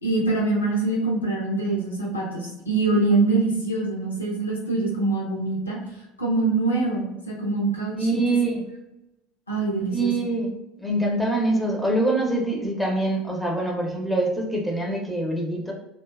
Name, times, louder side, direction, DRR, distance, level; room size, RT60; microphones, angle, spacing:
voice 1, 0.0-5.8 6.2-8.4 9.5-10.1, right 3 dB, 85° left, -3 dB, 0.5 m, -24 dB
voice 2, 8.0-8.6 9.9-15.7, right 2 dB, 5° left, -1 dB, 0.6 m, -24 dB
2.7 x 2.2 x 2.2 m, 0.95 s
figure-of-eight pair, 70°, 0 cm